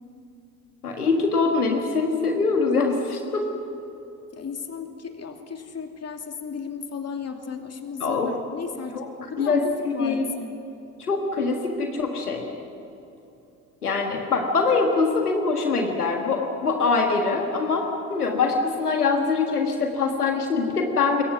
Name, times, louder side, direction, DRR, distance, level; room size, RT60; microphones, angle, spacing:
voice 1, 0.8-3.4 8.0-8.3 8.9-9.1 9.4-10.3 11.0-12.5 13.8-21.2, left 4 dB, 90° left, 3 dB, 1.7 m, -23 dB
voice 2, 4.3-10.5, left 5 dB, 35° left, 4 dB, 2.9 m, -35 dB
26.5 x 22.0 x 6.1 m, 3.0 s
figure-of-eight pair, 55°, 44 cm